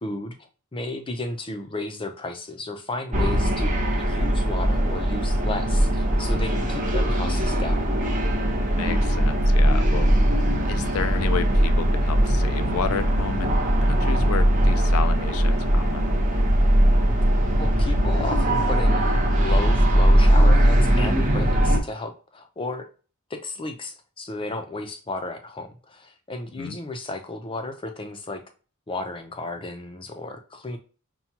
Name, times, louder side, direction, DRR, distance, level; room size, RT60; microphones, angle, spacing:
voice 1, 0.0-0.4 0.7-7.9 17.6-19.0 19.4-22.9 23.3-28.4 28.9-30.8, left 2 dB, 25° left, 6 dB, 0.5 m, -33 dB
sound 1, 3.1-21.8, right 1 dB, 35° right, 0.9 m, -20 dB
voice 2, 8.7-10.1 10.7-16.1 26.6-26.8, left 7 dB, 85° left, 11 dB, 0.4 m, -31 dB
5.7 x 2.3 x 2.8 m, 0.36 s
head